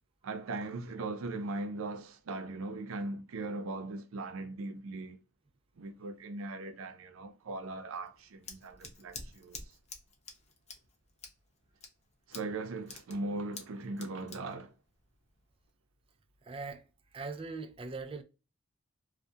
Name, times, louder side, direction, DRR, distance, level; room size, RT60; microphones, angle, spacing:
voice 1, 0.2-5.2 5.8-9.6 12.3-14.7, right 2 dB, 85° right, 0.5 m, -39 dB
Scissors, 7.9-15.7, left 4 dB, 35° left, 0.5 m, -50 dB
voice 2, 16.4-16.8 17.1-18.2, right 4 dB, 25° right, 0.3 m, -40 dB
2.7 x 2.1 x 2.3 m
head